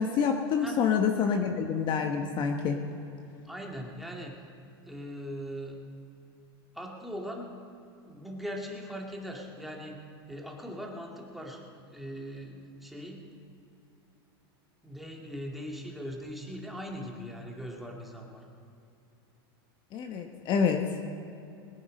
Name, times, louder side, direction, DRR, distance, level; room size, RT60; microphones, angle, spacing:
voice 1, 0.0-2.8 19.9-20.8, left 6 dB, 40° left, 4 dB, 1.1 m, -27 dB
voice 2, 3.4-4.4 4.8-5.8 6.7-7.6 8.0-10.0 10.3-13.3 14.8-18.5, equal, ahead, -1 dB, 2.1 m, -40 dB
21.5 x 9.5 x 5.3 m, 2.7 s
supercardioid pair, 130°, 13 cm